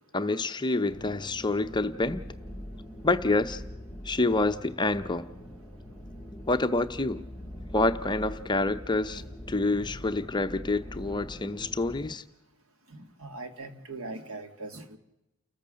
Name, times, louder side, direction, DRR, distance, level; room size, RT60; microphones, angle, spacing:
voice 1, 0.1-2.2 3.0-3.6 4.0-5.3 6.5-7.2 7.7-12.2, left 2 dB, 20° left, 9 dB, 0.7 m, -27 dB
sound 1, 0.9-12.1, equal, 5° right, 1.7 m, -43 dB
voice 2, 12.9-15.0, right 3 dB, 65° right, 7 dB, 1.9 m, -41 dB
29.5 x 14.0 x 6.4 m, 0.92 s
head